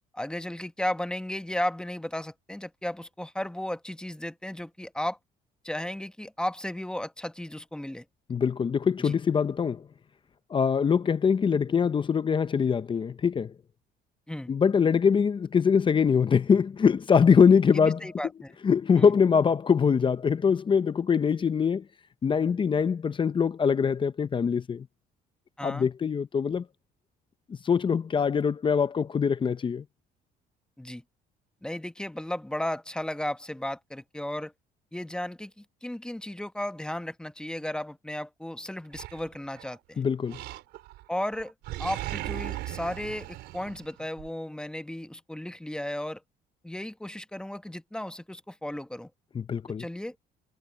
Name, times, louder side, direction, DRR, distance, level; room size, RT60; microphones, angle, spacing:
voice 1, 0.1-5.2 5.6-8.0 9.0-9.1 14.3-14.5 17.7-18.5 19.0-19.1 25.6-25.9 30.8-31.0 31.6-34.5 34.9-40.0 41.1-41.5 41.8-46.2 46.6-49.1 49.8-50.1, left 1 dB, 5° left, 1.0 m, -34 dB
voice 2, 8.3-9.9 10.5-13.5 14.5-18.1 18.6-21.8 22.2-24.9 25.6-26.6 27.6-29.8 40.0-40.4 49.3-49.8, left 6 dB, 30° left, 0.6 m, -23 dB
Animal, 38.9-39.8 40.3-41.0 41.3-44.3, right 17 dB, 85° right, 4.9 m, -37 dB
cardioid pair, 110°, 17 cm